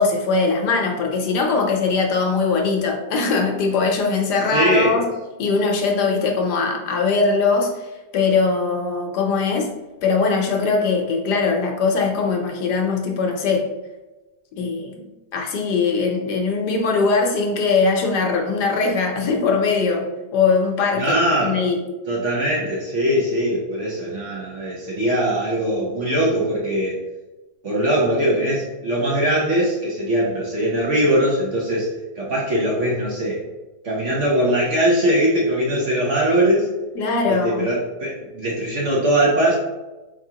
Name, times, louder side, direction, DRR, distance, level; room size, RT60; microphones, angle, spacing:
voice 1, 0.0-5.1 5.4-7.9 8.1-9.7 10.0-13.7 14.6-15.1 15.3-20.1 20.3-21.8 36.9-37.7, left 4 dB, 70° left, 2 dB, 1.2 m, -21 dB
voice 2, 4.5-5.0 20.9-21.6 22.1-27.0 27.6-31.9 32.2-33.4 33.8-36.7 37.3-39.6, right 1 dB, 55° right, -4 dB, 0.9 m, -21 dB
4.5 x 3.5 x 2.8 m, 1.1 s
omnidirectional pair, 1.9 m